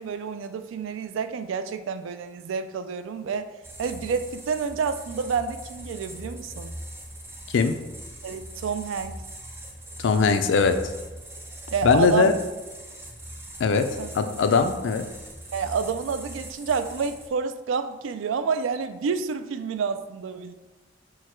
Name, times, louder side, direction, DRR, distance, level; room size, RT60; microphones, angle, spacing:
voice 1, 0.0-3.5 3.8-6.7 8.2-9.2 11.7-12.3 14.0-14.1 15.5-20.5, right 5 dB, 90° right, 10 dB, 0.3 m, -29 dB
sound 1, 3.6-17.3, right 1 dB, 10° right, 0.5 m, -41 dB
voice 2, 10.0-10.8 11.8-12.3 13.6-13.9 14.1-15.0, left 5 dB, 75° left, 8 dB, 0.4 m, -20 dB
4.6 x 2.2 x 4.4 m, 1.2 s
head